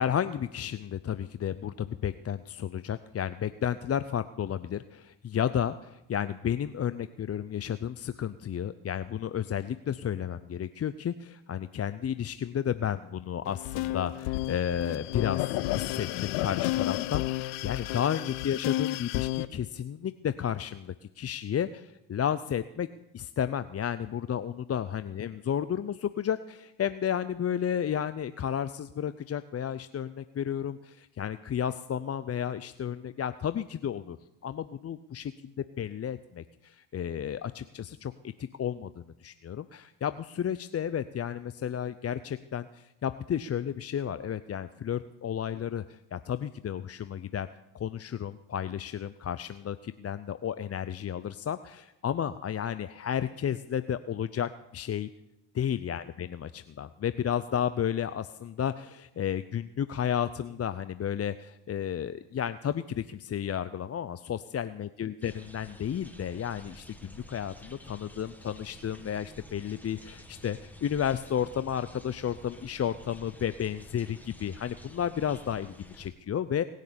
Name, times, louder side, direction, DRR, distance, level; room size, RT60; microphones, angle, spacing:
voice 1, 0.0-22.9 23.1-34.2 34.4-35.3 35.8-38.1 38.4-47.5 47.7-55.1 55.5-76.6, left 9 dB, 30° left, 13 dB, 0.5 m, -32 dB
sound 1, 13.4-19.5, left 17 dB, 90° left, 0.7 m, -31 dB
sound 2, 65.2-76.1, equal, 5° left, 2.0 m, -50 dB
19.5 x 6.6 x 8.6 m, 0.93 s
supercardioid pair, 65°, 50 cm